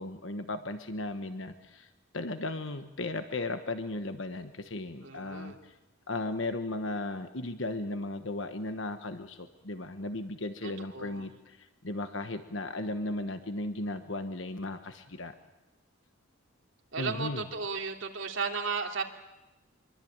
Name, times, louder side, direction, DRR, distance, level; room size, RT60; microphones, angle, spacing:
voice 1, 0.0-5.8 6.1-15.3 17.0-17.4, left 2 dB, 60° left, 9 dB, 1.2 m, -36 dB
voice 2, 5.0-5.6 10.6-11.3 16.9-19.0, right 5 dB, 60° right, 2 dB, 3.0 m, -35 dB
25.0 x 23.5 x 8.8 m, 1.0 s
head